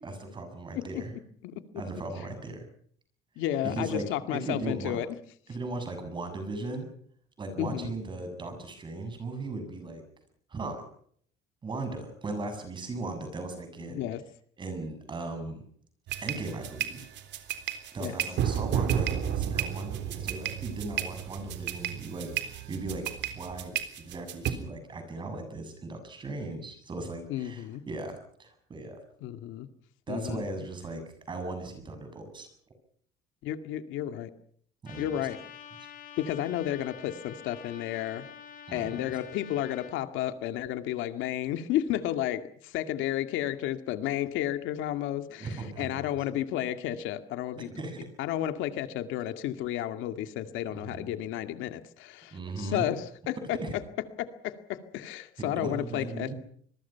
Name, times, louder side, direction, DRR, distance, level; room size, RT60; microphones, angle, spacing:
voice 1, 0.0-1.1 1.8-2.7 3.6-4.0 4.3-5.0 5.5-6.9 7.4-10.0 10.5-10.8 11.6-14.1 14.6-15.6 16.2-17.1 17.9-29.0 30.1-31.0 31.3-32.5 34.8-35.3 38.7-39.0 45.4-46.3 47.6-48.1 50.7-51.1 52.3-52.9 53.6-53.7 55.4-56.3, right 2 dB, 25° right, 7 dB, 7.3 m, -37 dB
voice 2, 3.4-5.1 7.6-7.9 13.8-14.2 18.0-18.1 27.3-27.8 29.2-29.7 30.1-30.4 33.4-34.3 35.0-35.4 36.2-38.3 38.7-47.7 48.2-53.6 54.2-56.3, left 12 dB, 75° left, 9 dB, 2.1 m, -32 dB
sound 1, 16.1-24.5, right 10 dB, 60° right, 3.6 m, -32 dB
Trumpet, 34.8-39.9, left 9 dB, 45° left, 5.4 m, -47 dB
26.5 x 22.0 x 5.8 m, 0.62 s
cardioid pair, 175°, 20 cm